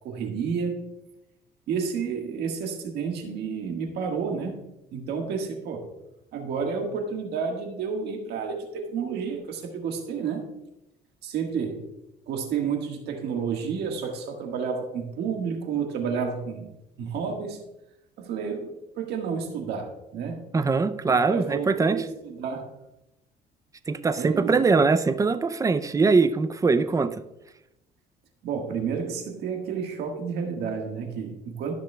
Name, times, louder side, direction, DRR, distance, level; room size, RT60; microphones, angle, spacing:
voice 1, 0.0-0.8 1.7-4.6 4.9-5.8 6.3-10.4 11.2-11.8 12.3-16.7 17.0-17.6 18.2-20.4 21.1-22.7 24.2-24.7 28.4-31.7, right 6 dB, 75° right, 3 dB, 1.6 m, -30 dB
voice 2, 20.5-22.0 23.9-27.1, right 4 dB, 20° right, 11 dB, 0.5 m, -22 dB
13.5 x 6.1 x 2.3 m, 0.91 s
cardioid pair, 110°, 17 cm